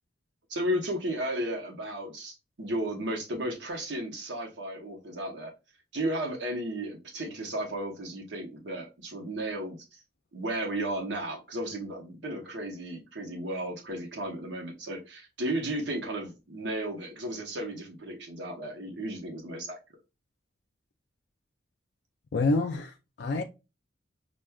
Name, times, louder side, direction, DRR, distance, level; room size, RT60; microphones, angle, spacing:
voice 1, 0.5-5.5 5.9-10.0 10.3-19.8, right 1 dB, 65° right, 0.9 m, -34 dB
voice 2, 22.3-23.4, left 3 dB, 65° left, 0.4 m, -27 dB
6.0 x 2.2 x 2.3 m
head